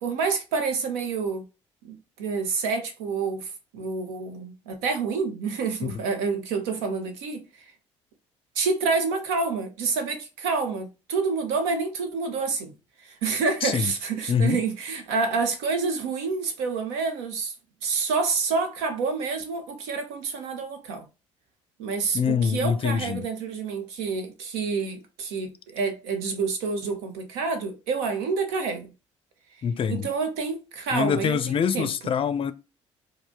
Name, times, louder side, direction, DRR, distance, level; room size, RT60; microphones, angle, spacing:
voice 1, 0.0-1.4 1.8-7.7 8.5-12.7 13.0-17.5 17.8-21.1 21.8-28.9 29.9-31.9, right 4 dB, 70° right, 0.9 m, -28 dB
voice 2, 13.6-13.9 14.3-14.6 22.1-23.2 29.6-30.1 30.9-32.5, left 7 dB, 35° left, 0.5 m, -25 dB
4.8 x 2.1 x 3.5 m
hypercardioid pair, 55°, 15 cm